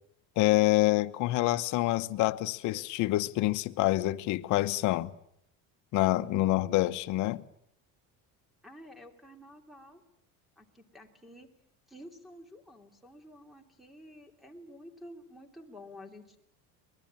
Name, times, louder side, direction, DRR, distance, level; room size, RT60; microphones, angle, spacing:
voice 1, 0.4-5.1 5.9-7.4, left 17 dB, 55° left, 1.0 m, -27 dB
voice 2, 8.6-10.0 10.6-11.5 11.9-16.4, left 1 dB, ahead, 2.8 m, -50 dB
24.5 x 21.0 x 8.8 m
cardioid pair, 165°, 35 cm